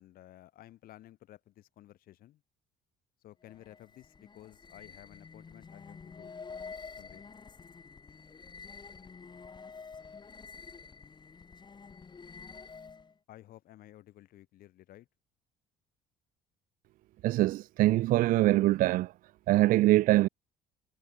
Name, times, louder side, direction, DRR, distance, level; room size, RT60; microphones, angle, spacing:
voice 1, 0.0-2.4 3.2-6.4 7.0-7.2 13.3-15.1, left 14 dB, 65° left, 3.9 m, -54 dB
sound 1, 3.4-13.2, left 5 dB, 30° left, 2.1 m, -48 dB
voice 2, 17.2-19.1 19.5-20.3, right 16 dB, 60° right, 0.4 m, -23 dB
supercardioid pair, 85°, 16 cm